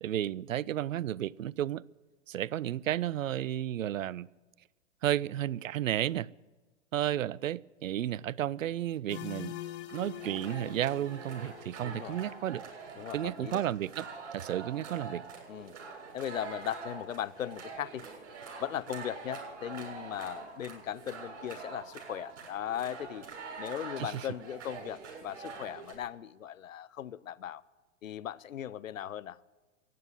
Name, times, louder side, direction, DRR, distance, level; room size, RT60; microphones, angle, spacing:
voice 1, 0.0-1.8 2.3-4.3 5.0-6.3 6.9-9.5 9.9-12.6 13.1-14.1 14.3-15.2 24.0-24.3, right 12 dB, 80° right, 0.5 m, -32 dB
sound 1, 9.1-12.8, left 14 dB, 50° left, 1.1 m, -45 dB
sound 2, 9.9-25.9, right 4 dB, 65° right, 6.8 m, -45 dB
voice 2, 11.8-12.2 13.0-13.6 15.5-15.8 16.1-18.0 18.6-23.3 23.6-27.6 28.0-29.4, left 10 dB, 80° left, 0.7 m, -38 dB
15.0 x 9.3 x 9.8 m
figure-of-eight pair, 105°, 39 cm